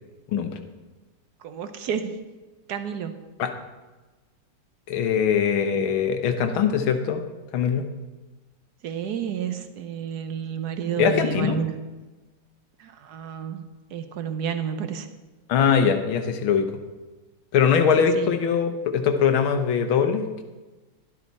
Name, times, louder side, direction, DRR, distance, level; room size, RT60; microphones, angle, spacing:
voice 1, 1.4-2.1 2.7-3.1 8.8-11.7 12.8-13.6 13.9-15.1 18.0-18.3, right 7 dB, 65° right, 9 dB, 1.1 m, -30 dB
voice 2, 4.9-7.2 7.5-7.8 11.0-11.6 15.5-16.7 17.5-20.4, left 7 dB, 85° left, 7 dB, 1.8 m, -22 dB
12.0 x 12.0 x 4.1 m, 1.2 s
omnidirectional pair, 2.2 m